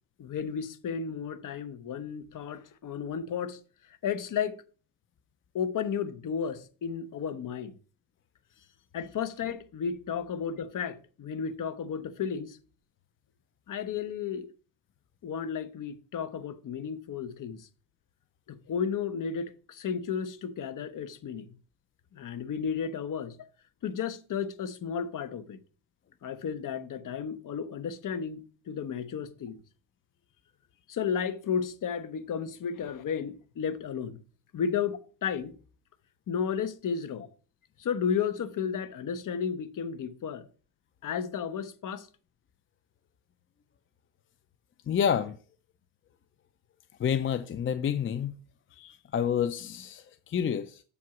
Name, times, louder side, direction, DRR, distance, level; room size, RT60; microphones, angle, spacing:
voice 1, 0.2-3.6 4.0-4.6 5.5-7.8 8.9-12.6 13.7-14.5 15.2-17.7 18.5-21.5 22.1-23.5 23.8-25.6 26.2-29.6 30.9-34.2 34.5-35.6 36.3-37.3 37.8-40.5 41.0-42.1, left 7 dB, 45° left, 0.9 m, -33 dB
voice 2, 44.9-45.4 47.0-48.3 48.7-50.8, left 8 dB, 30° left, 0.5 m, -29 dB
7.0 x 4.7 x 5.9 m
supercardioid pair, 85°, 44 cm